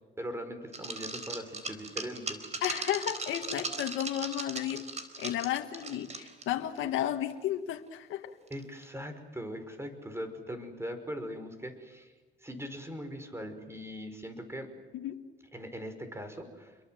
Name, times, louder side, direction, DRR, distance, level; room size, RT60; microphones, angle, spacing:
voice 1, 0.2-2.5 8.5-12.1 12.4-14.7 15.5-16.8, equal, 15° right, 8 dB, 5.5 m, -40 dB
sound 1, 0.7-6.5 6.8-6.9 7.3-7.4 8.5-8.8, right 3 dB, 35° right, 4.1 m, -38 dB
voice 2, 2.6-4.9 5.2-8.4 14.9-15.2, left 11 dB, 85° left, 4 dB, 1.7 m, -33 dB
29.0 x 23.0 x 7.8 m, 1.3 s
cardioid pair, 90°, 20 cm